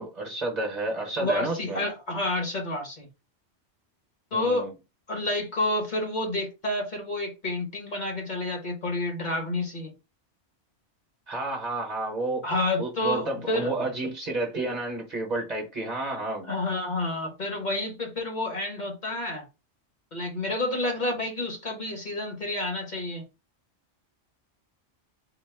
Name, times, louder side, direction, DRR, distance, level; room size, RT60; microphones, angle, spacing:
voice 1, 0.0-1.8 4.3-4.7 11.3-12.5 12.8-16.5, right 2 dB, 40° right, 0.9 m, -31 dB
voice 2, 1.2-3.1 4.3-4.7 5.1-9.9 12.4-13.7 16.5-19.4 20.1-23.2, left 2 dB, 40° left, 1.1 m, -29 dB
4.0 x 2.1 x 3.2 m
omnidirectional pair, 1.2 m